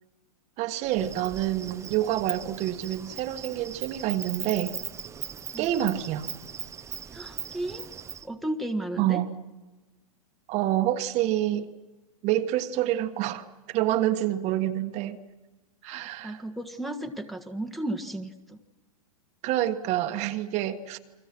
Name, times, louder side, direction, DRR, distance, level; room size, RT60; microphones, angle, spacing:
voice 1, 0.6-4.8 5.6-6.3 9.0-9.4 10.5-11.7 12.2-15.2 15.8-16.4 19.4-21.0, right 13 dB, 35° right, 8 dB, 1.5 m, -27 dB
Insect, 0.9-8.3, right 7 dB, 15° right, 1.0 m, -39 dB
voice 2, 7.1-7.9 8.2-9.2 15.8-18.6, right 1 dB, ahead, 4 dB, 1.5 m, -34 dB
29.5 x 23.5 x 6.1 m, 1.2 s
hypercardioid pair, 130°, 19 cm